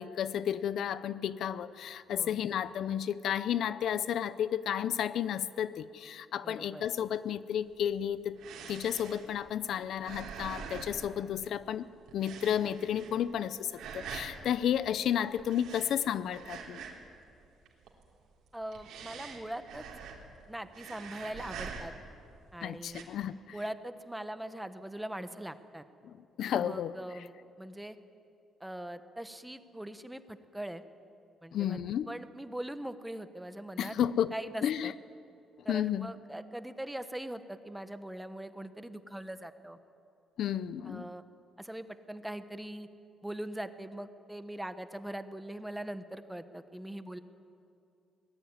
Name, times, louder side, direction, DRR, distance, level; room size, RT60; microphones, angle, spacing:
voice 1, 0.0-8.4 8.7-11.9 12.1-16.8 22.6-23.6 26.0-27.0 31.5-32.1 33.8-34.3 34.6-34.9 35.7-36.1 40.4-41.1, left 9 dB, 55° left, 15 dB, 0.6 m, -32 dB
voice 2, 6.4-6.8 18.5-19.9 20.5-21.9 22.5-23.1 23.5-25.8 26.6-28.0 28.6-30.8 31.4-31.8 32.1-34.0 34.3-34.9 35.6-39.8 40.8-41.2 41.6-42.9 43.2-47.2, right 1 dB, 5° right, 11 dB, 0.9 m, -41 dB
sound 1, 7.7-11.8 12.1-13.4 13.7-14.4 15.4-17.2 17.4-18.0 18.5-20.4 20.7-22.2 22.8-23.0, right 6 dB, 75° right, 3.6 m, -45 dB
23.5 x 19.5 x 9.5 m, 2.5 s
cardioid pair, 165°, 0 cm